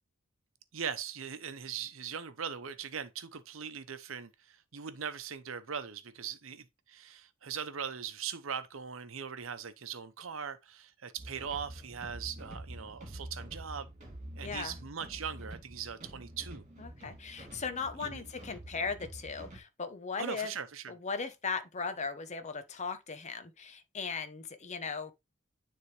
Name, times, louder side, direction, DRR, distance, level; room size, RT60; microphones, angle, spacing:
voice 1, 0.7-13.9 14.4-16.6 18.0-18.2 20.2-20.9, right 7 dB, 80° right, 0.8 m, -40 dB
sound 1, 11.2-19.6, right 1 dB, 35° right, 2.7 m, -47 dB
voice 2, 14.4-14.8 16.8-20.5 20.9-25.1, left 5 dB, 35° left, 0.8 m, -38 dB
9.7 x 3.5 x 3.2 m
head